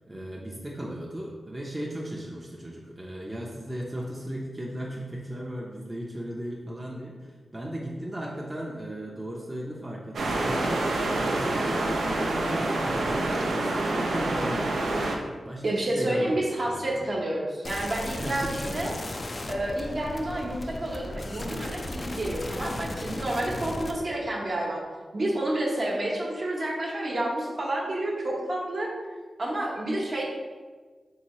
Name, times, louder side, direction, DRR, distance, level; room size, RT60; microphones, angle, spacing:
voice 1, 0.1-17.1 18.1-18.9 23.5-23.7, right 1 dB, 20° right, -3 dB, 0.5 m, -36 dB
sound 1, 10.1-15.2, right 2 dB, 85° right, 0.4 m, -27 dB
voice 2, 15.6-18.9 19.5-24.8 25.1-28.9 29.4-30.2, right 1 dB, 60° right, -3 dB, 0.9 m, -29 dB
sound 2, 17.6-23.9, left 2 dB, 45° left, 0.3 m, -36 dB
3.5 x 2.7 x 3.0 m, 1.4 s
cardioid pair, 45°, 0 cm